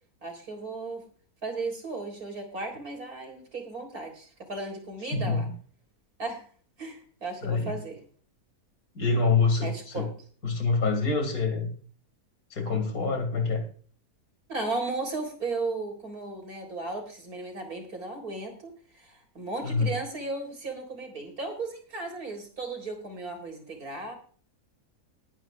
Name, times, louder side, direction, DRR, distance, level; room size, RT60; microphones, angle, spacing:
voice 1, 0.2-1.0 1.4-5.4 6.2-6.4 6.8-8.0 9.6-10.1 14.5-24.2, right 3 dB, 60° right, 3 dB, 4.3 m, -35 dB
voice 2, 5.1-5.5 7.4-7.7 8.9-10.1 10.4-11.7 12.5-13.6 19.6-19.9, left 4 dB, 60° left, 4 dB, 3.1 m, -26 dB
21.0 x 10.0 x 2.5 m, 0.43 s
omnidirectional pair, 1.8 m